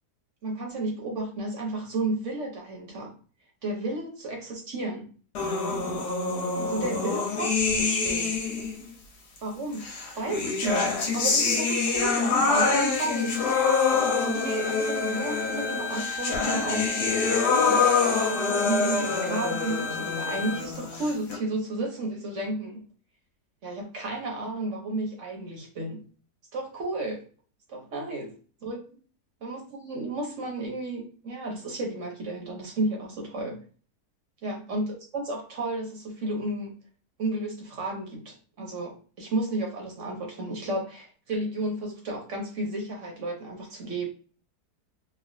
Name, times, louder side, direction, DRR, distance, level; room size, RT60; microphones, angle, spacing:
voice 1, 0.4-3.1 3.6-5.1 6.6-8.4 9.4-9.8 10.1-16.9 17.4-22.8 23.6-26.0 26.5-27.2 27.7-28.3 28.6-28.8 29.4-33.6 34.4-36.8 37.2-44.1, right 2 dB, 55° right, 0 dB, 1.0 m, -32 dB
sound 1, 5.3-8.8 9.8-21.4, left 4 dB, 80° left, 1.4 m, -26 dB
Bowed string instrument, 12.5-20.7, left 3 dB, 50° left, 1.4 m, -35 dB
3.1 x 2.4 x 2.5 m, 0.40 s
omnidirectional pair, 1.7 m